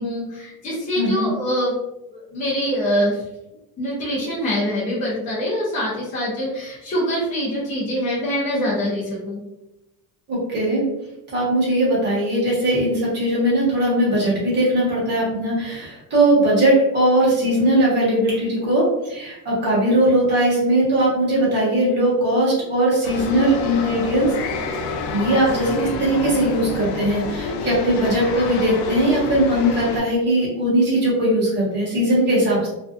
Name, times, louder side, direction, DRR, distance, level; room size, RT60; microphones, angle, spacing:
voice 1, 0.0-1.7 2.1-3.2 3.8-9.4, equal, 20° left, -7 dB, 0.5 m, -24 dB
voice 2, 1.0-1.3 10.3-10.8 11.3-24.3 25.1-32.7, right 1 dB, 25° right, -7 dB, 1.0 m, -19 dB
sound 1, 23.0-30.0, left 4 dB, 85° left, 0.5 m, -28 dB
2.6 x 2.2 x 2.4 m, 0.91 s
cardioid pair, 180°, 43 cm